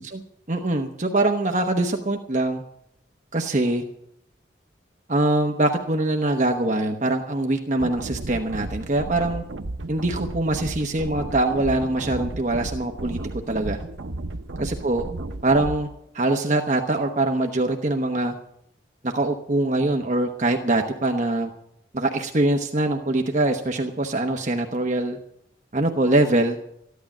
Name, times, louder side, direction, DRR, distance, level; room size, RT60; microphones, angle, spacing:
voice 1, 0.5-2.6 3.3-3.8 5.1-9.4 9.9-13.2 13.5-13.8 14.6-15.0 15.4-15.9 16.1-18.3 19.0-21.5 21.9-25.2 25.7-26.6, right 2 dB, 40° right, 3 dB, 1.0 m, -23 dB
sound 1, 7.8-15.8, right 2 dB, 85° right, 0.8 m, -34 dB
14.0 x 11.5 x 7.3 m, 0.76 s
head